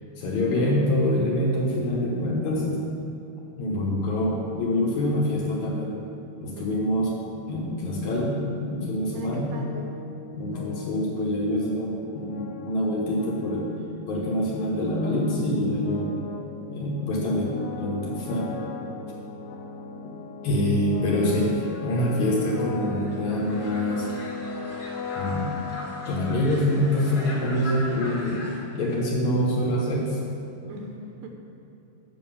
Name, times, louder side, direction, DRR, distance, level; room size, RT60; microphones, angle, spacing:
voice 1, 0.2-2.8 3.6-6.0 6.4-9.6 10.3-13.7 14.1-16.1 16.7-18.5 20.4-24.1 25.2-25.5 26.1-28.4 28.7-30.2, left 1 dB, 65° left, -3 dB, 2.2 m, -25 dB
voice 2, 9.1-10.0 14.2-14.3 30.7-31.3, right 1 dB, 75° right, 2 dB, 2.2 m, -40 dB
sound 1, 9.3-26.9, left 5 dB, 80° left, 1.7 m, -38 dB
sound 2, 21.1-28.6, left 1 dB, 40° left, 1.4 m, -40 dB
7.8 x 5.7 x 7.1 m, 2.9 s
omnidirectional pair, 4.1 m